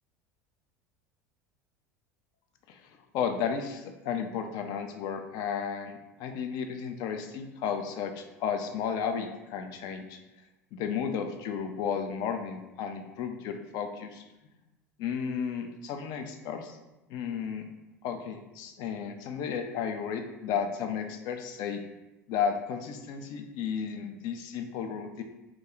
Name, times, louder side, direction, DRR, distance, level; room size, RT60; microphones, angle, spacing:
voice 1, 3.1-10.2 10.7-14.2 15.0-16.8 17.1-17.7 18.0-21.8 22.3-25.2, left 7 dB, 50° left, 5 dB, 0.4 m, -33 dB
2.4 x 2.2 x 3.0 m, 1.0 s
figure-of-eight pair, 75°, 9 cm